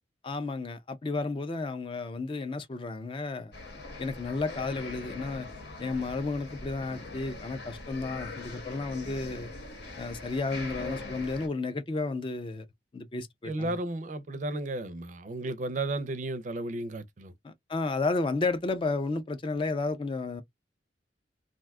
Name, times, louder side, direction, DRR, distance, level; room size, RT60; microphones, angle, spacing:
voice 1, 0.2-3.5 4.0-5.5 5.8-9.5 10.0-12.7 12.9-13.8 17.4-20.4, left 3 dB, 30° left, 0.4 m, -32 dB
sound 1, 3.5-11.5, left 2 dB, 70° left, 1.0 m, -42 dB
voice 2, 13.4-17.3, right 2 dB, 45° right, 0.4 m, -33 dB
2.6 x 2.2 x 3.4 m
head